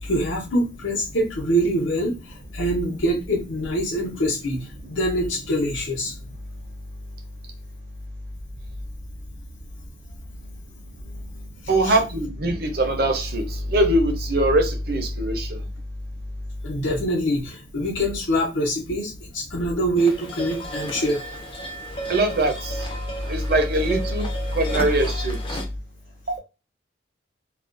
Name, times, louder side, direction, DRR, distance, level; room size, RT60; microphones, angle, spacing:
voice 1, 0.0-6.1 11.8-12.0 16.6-21.2, equal, 80° left, 0.8 m, -24 dB
voice 2, 11.7-15.5 22.1-22.8 23.3-24.3 24.5-25.6, right 1 dB, 50° right, 0.6 m, -22 dB
sound 1, 20.0-25.6, right 1 dB, 25° left, 0.4 m, -34 dB
2.4 x 2.2 x 2.5 m
head